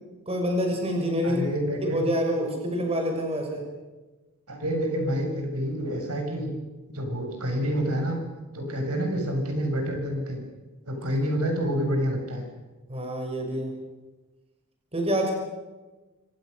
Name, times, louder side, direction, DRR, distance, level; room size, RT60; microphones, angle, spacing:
voice 1, 0.3-1.5 1.8-3.6 12.9-13.7 14.9-15.3, equal, 25° right, 2 dB, 6.2 m, -27 dB
voice 2, 1.2-2.0 4.5-6.5 6.9-8.2 8.5-10.4 10.9-12.4, equal, 80° right, 4 dB, 6.7 m, -28 dB
26.5 x 23.5 x 6.6 m, 1.2 s
head